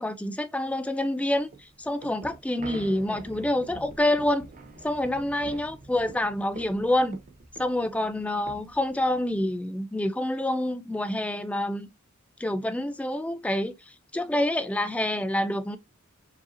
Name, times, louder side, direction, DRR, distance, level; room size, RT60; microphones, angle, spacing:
voice 1, 0.0-4.4 4.8-7.2 7.6-11.9 12.4-13.7 14.1-15.8, left 1 dB, 5° left, 0.3 m, -27 dB
sound 1, 1.4-9.5, right 2 dB, 35° right, 0.6 m, -45 dB
4.7 x 2.8 x 2.6 m
head